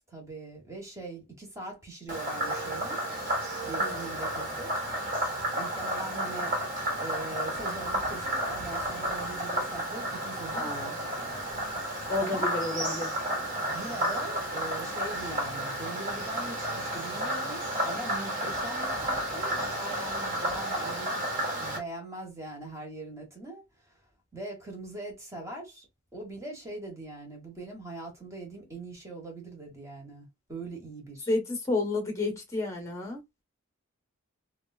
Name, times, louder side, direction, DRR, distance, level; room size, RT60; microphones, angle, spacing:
voice 1, 0.1-4.7 5.5-11.4 12.2-12.6 13.7-23.9 24.3-25.9 26.1-31.3, right 2 dB, 15° right, 1.3 m, -42 dB
Frog, 2.1-21.8, right 1 dB, 40° right, 1.4 m, -32 dB
voice 2, 10.5-10.9 12.1-13.1 31.3-33.2, left 2 dB, 15° left, 1.0 m, -31 dB
3.4 x 2.3 x 2.3 m
head